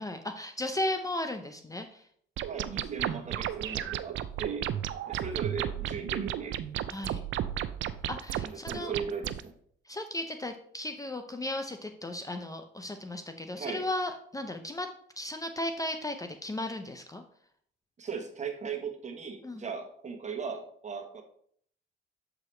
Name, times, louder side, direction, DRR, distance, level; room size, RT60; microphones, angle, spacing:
voice 1, 0.0-2.1 6.9-7.2 8.1-8.9 9.9-14.9 15.2-17.2 19.4-19.6, left 1 dB, 15° left, 6 dB, 0.6 m, -35 dB
voice 2, 2.4-4.7 5.1-6.6 7.1-7.2 8.4-9.5 13.5-13.9 18.0-21.2, right 6 dB, 35° right, 4 dB, 1.2 m, -38 dB
sound 1, 2.4-9.4, right 11 dB, 70° right, 0.4 m, -34 dB
7.3 x 4.9 x 3.2 m, 0.62 s
cardioid pair, 90°, 20 cm